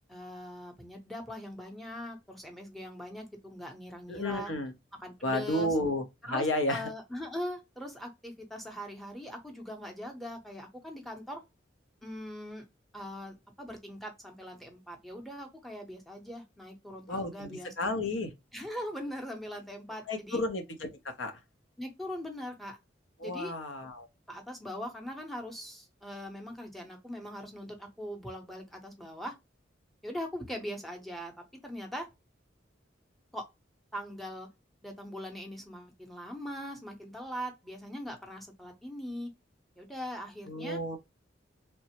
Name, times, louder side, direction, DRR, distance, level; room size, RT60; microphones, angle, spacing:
voice 1, 0.1-4.5 5.0-5.8 6.2-11.4 12.0-12.7 12.9-17.9 18.5-20.4 21.8-22.8 23.2-23.6 24.3-29.3 30.0-31.3 31.6-32.1 33.3-33.4 33.9-34.5 34.8-39.3 39.8-40.8, equal, ahead, 0.7 m, -41 dB
voice 2, 4.1-4.7 5.2-6.9 17.1-18.3 20.1-20.9 21.2-21.3 23.2-24.1 40.5-41.0, left 1 dB, 90° left, 0.7 m, -32 dB
3.3 x 2.0 x 2.8 m
head